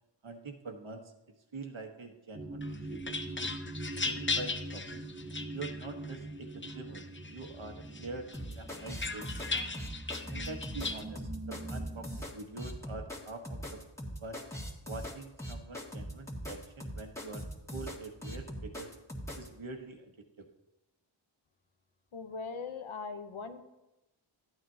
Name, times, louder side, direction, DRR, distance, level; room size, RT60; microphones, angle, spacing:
voice 1, 0.2-1.1 1.5-3.6 4.0-5.1 5.5-7.0 7.3-9.7 10.3-13.8 14.2-14.4 14.8-17.5 17.7-18.9 19.3-20.5, right 3 dB, 70° right, 4 dB, 1.3 m, -45 dB
sound 1, 2.3-12.2, right 2 dB, 20° right, 0.9 m, -43 dB
sound 2, 2.6-6.2 6.6-7.5 7.9-11.0, left 3 dB, 25° left, 0.7 m, -37 dB
sound 3, 8.3-19.5, equal, 5° left, 1.9 m, -41 dB
voice 2, 22.1-23.6, left 4 dB, 75° left, 7 dB, 0.9 m, -40 dB
13.0 x 9.1 x 2.8 m, 0.98 s
cardioid pair, 40°, 49 cm